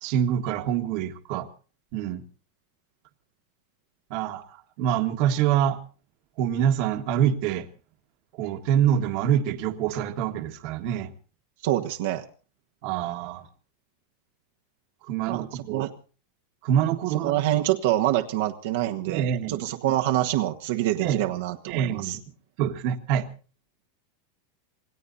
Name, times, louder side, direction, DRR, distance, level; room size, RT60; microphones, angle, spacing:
voice 1, 0.0-1.5 1.9-2.2 4.1-5.8 6.4-7.7 8.4-11.1 12.8-13.5 15.0-15.9 16.6-17.4 19.1-19.6 21.0-21.2 21.7-22.2 22.6-23.3, right 9 dB, 40° right, 8 dB, 1.5 m, -25 dB
voice 2, 11.6-12.2 15.3-15.9 17.2-22.2, right 14 dB, 60° right, 4 dB, 1.3 m, -26 dB
27.5 x 19.0 x 2.7 m, 0.39 s
supercardioid pair, 175°, 0 cm